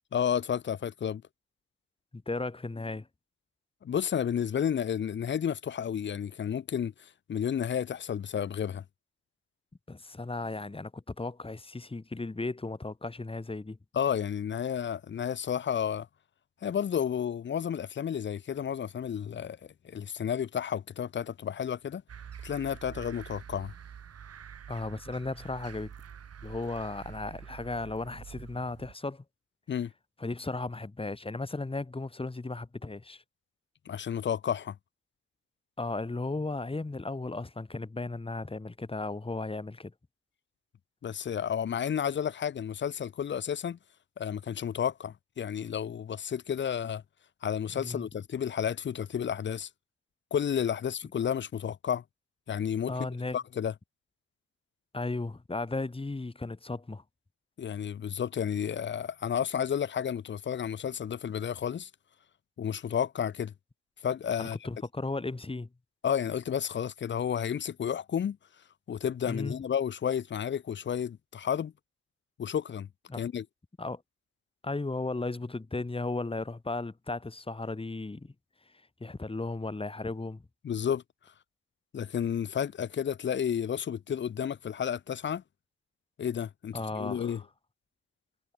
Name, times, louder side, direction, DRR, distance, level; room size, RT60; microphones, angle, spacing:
voice 1, 0.1-1.2 3.8-8.8 13.9-16.1 16.6-19.6 19.8-22.0 22.4-23.7 29.7-29.9 33.9-34.8 41.0-43.8 44.2-47.0 47.4-49.7 50.3-52.0 52.5-52.9 53.3-53.7 57.6-61.9 62.6-63.5 64.0-64.6 66.0-68.4 68.9-71.7 72.4-72.9 73.2-73.4 80.6-81.0 81.9-85.4 86.2-87.4, left 8 dB, 40° left, 0.8 m, -31 dB
voice 2, 2.1-3.1 9.9-13.8 24.7-25.9 26.4-29.2 30.2-33.2 35.8-39.9 47.7-48.1 52.9-53.4 54.9-57.0 64.4-65.7 69.2-69.6 73.1-73.2 73.8-74.0 74.6-78.3 79.0-80.5 86.7-87.4, left 3 dB, 20° left, 4.2 m, -35 dB
sound 1, 22.1-28.9, right 8 dB, 55° right, 6.1 m, -47 dB
cardioid pair, 90°, 30 cm